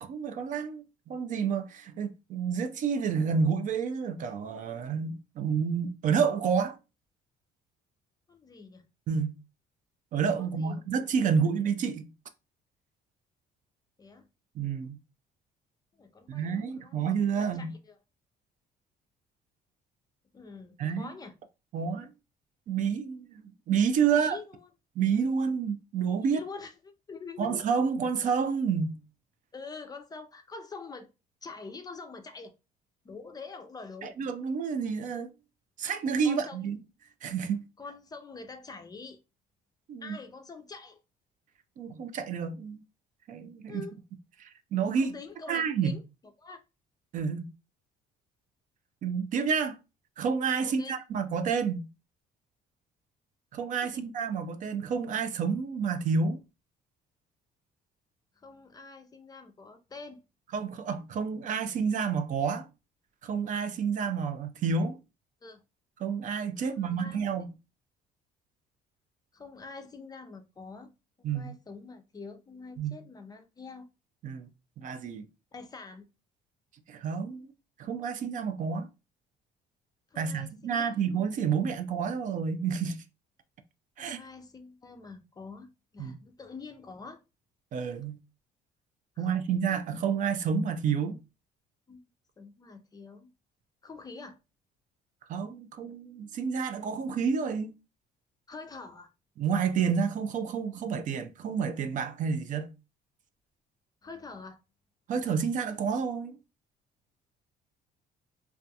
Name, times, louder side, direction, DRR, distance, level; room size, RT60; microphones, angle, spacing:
voice 1, 0.0-6.8 9.1-9.4 10.1-12.1 14.6-15.0 16.3-17.7 20.8-21.1 21.7-22.1 22.7-24.4 25.0-26.4 27.4-29.0 34.0-35.3 35.8-36.8 37.2-37.6 39.9-40.2 41.8-42.8 43.3-43.8 44.4-45.1 45.5-46.0 47.1-47.5 49.0-49.8 50.2-51.8 53.5-56.4 60.5-62.7 63.2-65.0 66.0-67.5 71.2-71.5 72.8-73.0 74.2-74.5 74.8-75.3 76.9-77.5 77.8-78.9 80.2-83.0 84.0-84.2 86.0-86.1 87.7-88.2 89.2-91.2 95.3-97.7 99.4-102.7 105.1-106.4, right 6 dB, 50° right, 0.4 m, -29 dB
voice 2, 8.3-8.9 10.4-10.8 14.0-14.3 16.0-17.0 17.3-18.0 20.3-21.3 24.1-24.7 26.3-27.6 29.5-31.1 31.4-32.5 33.0-34.1 36.2-36.6 37.8-39.2 40.0-41.0 43.7-44.0 44.9-46.0 46.4-46.6 50.6-50.9 53.8-54.1 58.4-60.2 65.4-65.6 66.6-67.2 69.3-70.9 71.2-73.9 75.5-76.1 80.1-80.8 84.0-87.2 89.2-89.6 91.9-92.0 92.4-93.3 93.8-94.4 98.5-99.1 104.0-104.6, left 4 dB, 25° left, 0.4 m, -45 dB
2.4 x 2.2 x 2.6 m
cardioid pair, 110°, 17 cm